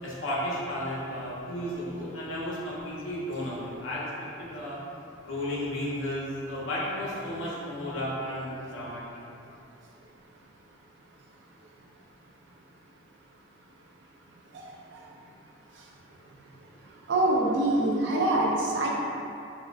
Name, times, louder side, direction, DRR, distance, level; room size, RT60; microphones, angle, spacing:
voice 1, 0.0-4.0 4.4-4.8 5.2-9.0, left 1 dB, 75° left, -7 dB, 0.7 m, -33 dB
voice 2, 17.1-18.9, right 1 dB, 60° right, -2 dB, 0.4 m, -24 dB
3.6 x 2.1 x 2.3 m, 2.7 s
head